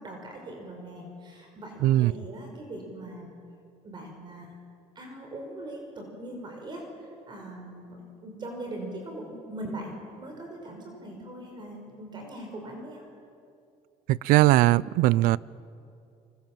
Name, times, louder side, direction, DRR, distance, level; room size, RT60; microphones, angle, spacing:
voice 1, 0.0-3.3 3.8-4.5 5.0-8.0 8.2-13.0, right 1 dB, 30° right, 5.6 m, -40 dB
voice 2, 1.8-2.1 14.1-15.4, right 16 dB, 75° right, 0.6 m, -20 dB
30.0 x 25.0 x 7.6 m
cardioid pair, 135°, 15 cm